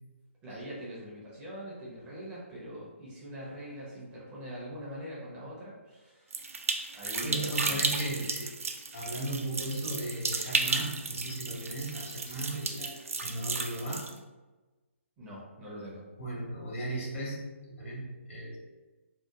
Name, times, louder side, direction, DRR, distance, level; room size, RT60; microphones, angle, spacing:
voice 1, 0.4-6.5 6.9-8.3 15.2-16.0, equal, 15° right, -7 dB, 0.6 m, -43 dB
sound 1, 6.3-14.1, right 4 dB, 85° right, 0.3 m, -34 dB
voice 2, 7.2-8.5 8.9-14.1 16.2-18.6, right 1 dB, 75° left, -5 dB, 1.3 m, -36 dB
2.8 x 2.1 x 2.3 m, 1.2 s
hypercardioid pair, 150°, 7 cm